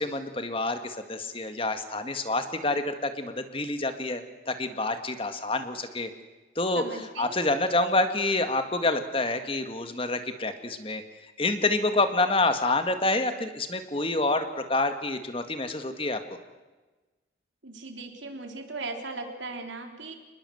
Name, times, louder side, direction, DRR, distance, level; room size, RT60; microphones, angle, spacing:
voice 1, 0.0-6.1 6.6-11.0 11.4-16.4, left 2 dB, 30° left, 8 dB, 1.9 m, -27 dB
voice 2, 6.7-7.4 17.6-20.2, right 3 dB, 85° right, 4 dB, 3.8 m, -38 dB
28.0 x 20.5 x 8.0 m, 1.2 s
head